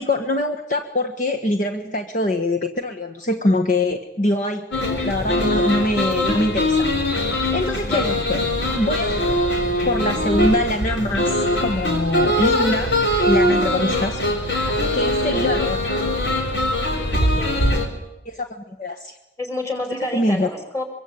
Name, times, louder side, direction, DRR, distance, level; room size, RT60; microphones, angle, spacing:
voice 1, 0.0-4.7 5.0-8.4 8.7-9.3 9.8-13.0 13.3-14.2 14.9-15.8 18.2-19.1 20.1-20.5, left 1 dB, 45° left, 3 dB, 1.6 m, -23 dB
sound 1, 4.7-17.9, left 1 dB, 80° left, 4.8 m, -21 dB
voice 2, 7.8-8.2 16.9-17.6 19.4-20.8, left 1 dB, 15° left, 5 dB, 5.2 m, -29 dB
24.5 x 23.5 x 8.8 m, 0.91 s
head